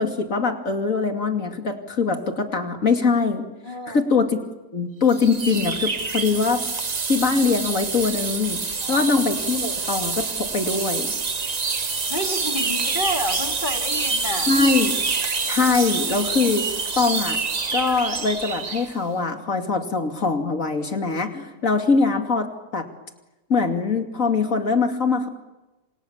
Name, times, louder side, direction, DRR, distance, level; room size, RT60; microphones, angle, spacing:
voice 1, 0.0-3.5 3.9-4.5 4.7-6.6 7.1-8.6 8.9-11.1 14.5-14.9 15.5-16.7 17.0-17.4 17.7-22.8 23.5-25.3, left 4 dB, 60° left, 5 dB, 2.9 m, -22 dB
voice 2, 3.6-4.0 8.8-9.0 12.1-14.5, left 1 dB, 35° left, 4 dB, 2.7 m, -29 dB
sound 1, 5.1-18.9, right 4 dB, 30° right, 1.0 m, -26 dB
27.5 x 27.5 x 7.3 m, 1.1 s
omnidirectional pair, 1.6 m